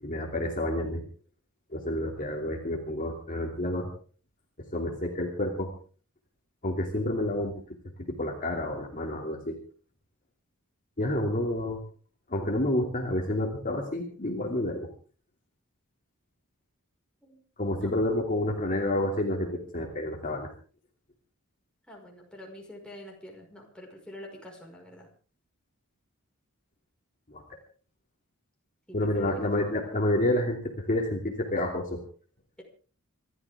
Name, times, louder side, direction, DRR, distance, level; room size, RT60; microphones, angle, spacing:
voice 1, 0.0-1.0 1.7-3.9 4.7-5.7 6.6-7.5 8.1-9.6 11.0-11.8 12.3-14.9 17.6-20.5 27.3-27.4 28.9-32.0, left 1 dB, 40° left, 1 dB, 2.8 m, -29 dB
voice 2, 21.9-25.1 28.9-29.3, left 1 dB, 5° left, -1 dB, 5.4 m, -46 dB
26.5 x 13.0 x 3.6 m, 0.41 s
head